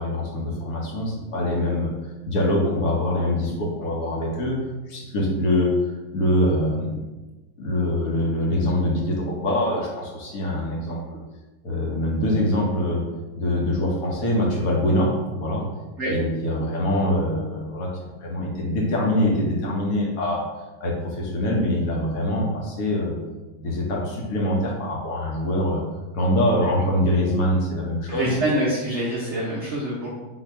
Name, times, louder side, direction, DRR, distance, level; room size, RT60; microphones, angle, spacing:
voice 1, 0.0-1.9 2.2-4.6 4.9-5.8 6.1-7.0 7.6-11.2 11.6-13.1 13.3-15.7 16.1-20.5 20.8-23.2 23.6-25.8 26.1-28.4, left 1 dB, 55° left, -2 dB, 1.2 m, -24 dB
voice 2, 28.1-30.1, right 1 dB, 60° right, -5 dB, 0.7 m, -25 dB
4.2 x 2.7 x 4.3 m, 1.2 s
omnidirectional pair, 2.2 m